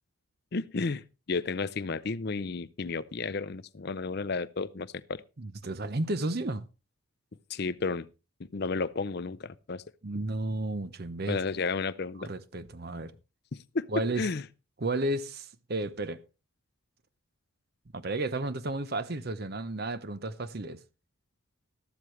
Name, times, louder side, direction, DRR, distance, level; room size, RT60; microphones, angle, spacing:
voice 1, 0.5-1.0 1.3-5.2 7.5-8.1 8.4-9.8 11.3-12.3 13.5-13.9 14.2-14.4, left 4 dB, 50° left, 0.5 m, -32 dB
voice 2, 5.4-6.6 10.0-11.4 12.2-13.1 13.9-14.2 14.8-16.2 17.9-20.8, right 2 dB, 45° right, 0.7 m, -32 dB
13.5 x 12.5 x 3.2 m
head